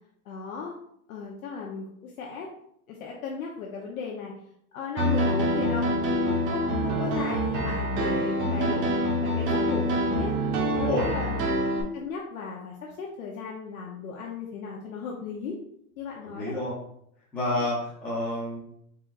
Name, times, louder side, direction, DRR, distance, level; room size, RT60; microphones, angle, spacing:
voice 1, 0.3-0.8 1.1-2.5 2.9-4.3 4.7-8.9 9.2-10.3 10.8-11.4 11.9-15.6 16.0-16.5, left 5 dB, 65° left, -1 dB, 0.9 m, -36 dB
Piano, 5.0-11.8, equal, 35° right, 0.9 m, -26 dB
voice 2, 10.7-11.1 16.2-16.7 17.3-18.6, left 1 dB, 5° left, -11 dB, 0.4 m, -29 dB
4.3 x 3.9 x 2.4 m, 0.71 s
hypercardioid pair, 150°, 45 cm